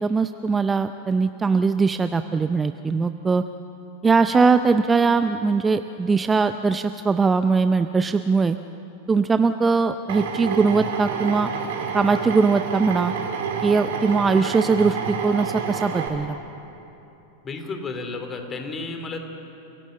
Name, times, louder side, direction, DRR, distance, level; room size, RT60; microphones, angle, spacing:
voice 1, 0.0-3.4 4.0-8.6 9.1-11.5 11.9-13.1 13.6-16.4, right 4 dB, 15° right, 10 dB, 0.5 m, -21 dB
Drill, 10.1-16.1, right 6 dB, 55° right, 2.8 m, -29 dB
voice 2, 17.4-19.3, left 3 dB, 20° left, 5 dB, 2.6 m, -32 dB
29.0 x 17.0 x 7.6 m, 2.9 s
figure-of-eight pair, 90°, 0 cm